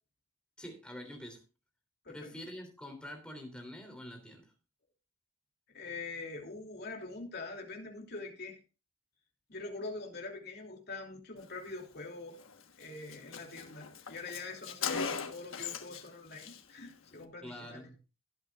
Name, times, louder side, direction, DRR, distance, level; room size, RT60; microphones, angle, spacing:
voice 1, 0.6-1.4 2.1-4.5 17.4-18.0, left 1 dB, 5° left, 3 dB, 3.1 m, -46 dB
voice 2, 5.7-8.6 9.5-12.4 12.8-17.8, left 3 dB, 50° left, 1 dB, 2.8 m, -44 dB
Car, 12.4-12.5 12.8-12.9 13.1-16.1 16.3-16.6, left 6 dB, 80° left, 1.2 m, -38 dB
17.0 x 9.0 x 2.4 m, 0.31 s
head